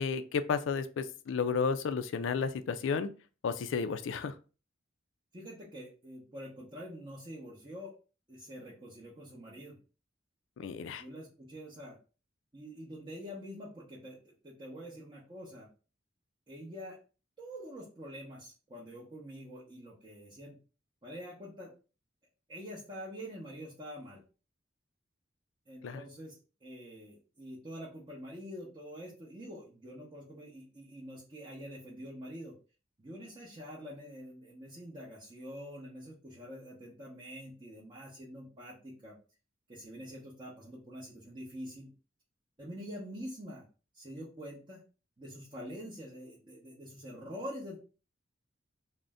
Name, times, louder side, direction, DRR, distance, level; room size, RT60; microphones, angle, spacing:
voice 1, 0.0-3.1 3.4-4.3 10.6-11.0 25.8-26.0, left 5 dB, 75° left, 10 dB, 0.3 m, -32 dB
voice 2, 5.3-7.9 8.3-9.8 11.0-12.0 12.5-15.7 16.5-17.0 17.4-20.6 21.0-21.7 22.5-24.2 25.7-26.3 26.6-32.5 33.0-39.2 39.7-41.9 42.6-43.7 43.9-44.8 45.2-47.8, equal, 25° right, -7 dB, 0.8 m, -46 dB
2.5 x 2.1 x 3.4 m, 0.34 s
head